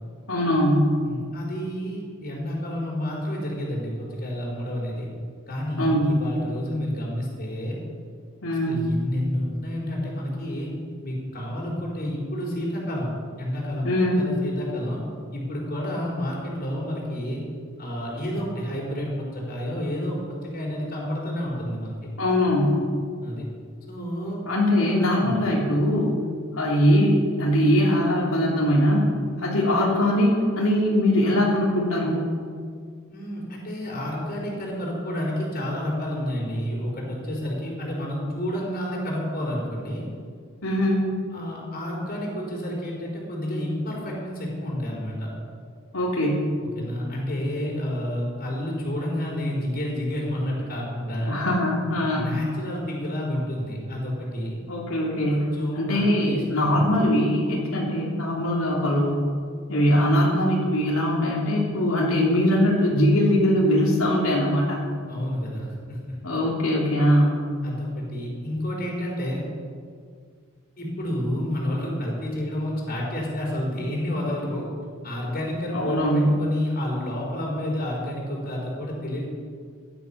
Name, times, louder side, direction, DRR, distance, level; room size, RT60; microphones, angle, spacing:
voice 1, 0.3-0.9 5.8-6.2 8.4-8.9 13.8-14.2 22.2-22.8 24.5-26.1 26.5-29.1 29.4-32.3 40.6-41.1 45.9-46.5 51.3-52.3 54.7-55.5 55.8-59.2 59.7-64.9 66.2-67.4 75.7-76.3, equal, 85° left, -4 dB, 3.1 m, -21 dB
voice 2, 1.0-5.1 5.5-7.8 8.5-10.7 11.0-13.1 13.4-15.0 15.3-17.4 17.8-22.1 23.2-23.5 23.9-24.4 25.2-25.3 33.1-40.1 41.3-45.3 46.8-51.4 52.1-54.6 55.3-56.4 56.7-56.8 65.1-66.1 67.6-69.5 70.8-74.7 75.0-79.2, equal, 45° left, -2 dB, 4.4 m, -30 dB
16.5 x 11.0 x 5.8 m, 2.1 s
head